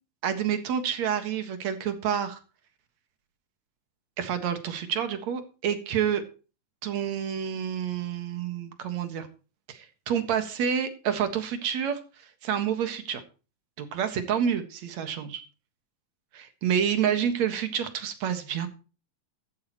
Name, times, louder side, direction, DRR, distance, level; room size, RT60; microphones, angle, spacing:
voice 1, 0.2-2.4 4.2-6.2 6.8-9.3 9.7-12.0 12.4-13.2 13.8-15.4 16.3-18.7, right 8 dB, 70° right, 8 dB, 2.9 m, -28 dB
14.0 x 12.5 x 3.1 m, 0.34 s
omnidirectional pair, 3.3 m